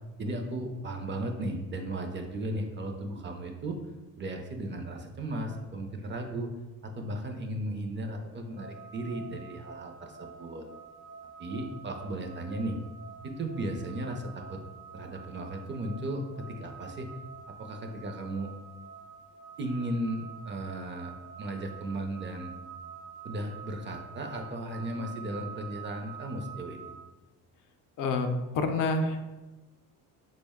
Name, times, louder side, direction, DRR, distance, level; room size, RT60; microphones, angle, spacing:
voice 1, 0.2-3.8 4.2-6.5 7.0-10.6 11.4-12.8 13.2-14.6 14.9-17.1 17.6-18.5 19.6-22.5 23.2-26.9, right 1 dB, 30° right, 4 dB, 0.5 m, -35 dB
sound 1, 8.6-26.9, right 6 dB, 90° right, 0.8 m, -47 dB
voice 2, 28.0-29.2, left 3 dB, 60° left, 5 dB, 0.5 m, -28 dB
3.8 x 2.1 x 3.5 m, 1.1 s
cardioid pair, 95°, 36 cm